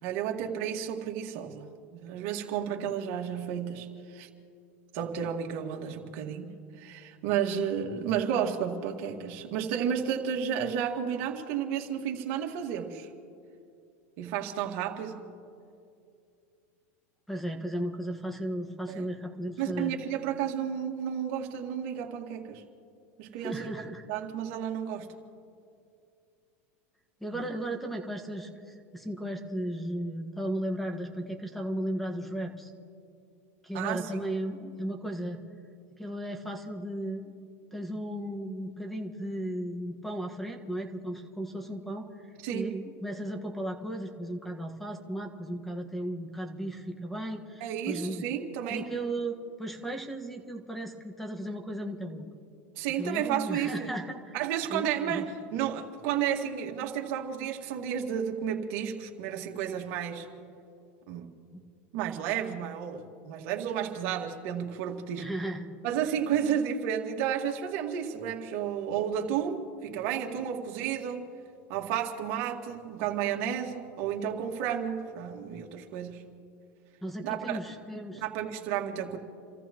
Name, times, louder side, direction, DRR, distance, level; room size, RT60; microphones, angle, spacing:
voice 1, 0.0-4.3 4.9-13.1 14.2-15.2 18.9-19.1 19.6-22.6 23.2-23.8 24.1-25.1 27.3-27.5 33.7-34.0 42.4-42.8 47.6-48.9 52.8-53.9 54.3-60.3 61.1-61.3 61.9-65.3 65.8-71.3 71.7-76.2 77.2-77.6 78.1-79.2, right 8 dB, 60° right, 2 dB, 2.1 m, -32 dB
voice 2, 17.3-19.9 23.4-24.0 27.2-28.5 28.9-32.7 33.6-35.4 36.0-37.3 37.7-42.1 42.5-48.2 48.7-52.3 53.0-54.4 54.7-55.2 65.2-65.7 77.0-78.2, right 1 dB, ahead, 4 dB, 1.6 m, -35 dB
29.5 x 14.5 x 3.1 m, 2.5 s
supercardioid pair, 125°, 8 cm